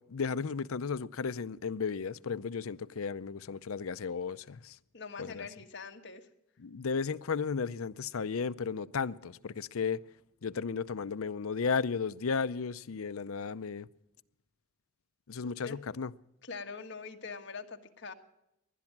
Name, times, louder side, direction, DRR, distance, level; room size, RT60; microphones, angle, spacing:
voice 1, 0.1-4.8 5.2-5.5 6.6-10.0 10.4-13.9 15.3-16.1, left 5 dB, 90° left, 0.6 m, -34 dB
voice 2, 4.9-6.3 15.4-16.0 16.4-18.1, left 4 dB, 60° left, 1.5 m, -44 dB
19.5 x 12.0 x 5.9 m
head